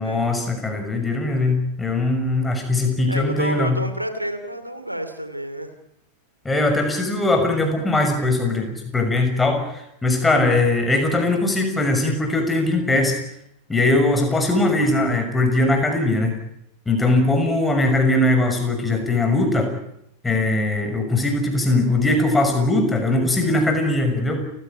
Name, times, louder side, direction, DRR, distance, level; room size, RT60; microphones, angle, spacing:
voice 1, 0.0-3.8 6.4-13.2 13.7-16.4 16.9-19.7 20.2-24.4, left 2 dB, 10° left, 5 dB, 6.4 m, -20 dB
voice 2, 3.1-5.7, right 1 dB, 85° right, 9 dB, 2.7 m, -29 dB
29.5 x 16.0 x 9.2 m, 0.76 s
figure-of-eight pair, 90°, 0 cm